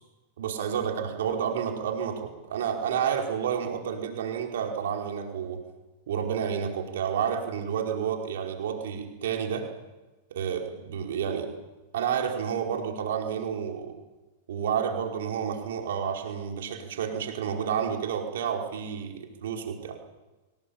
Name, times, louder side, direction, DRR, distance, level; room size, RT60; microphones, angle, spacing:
voice 1, 0.4-5.6 6.1-9.7 10.3-11.5 11.9-13.9 14.5-20.0, right 8 dB, 75° right, 2 dB, 4.9 m, -30 dB
25.5 x 19.5 x 8.8 m, 1.1 s
hypercardioid pair, 115°, 0 cm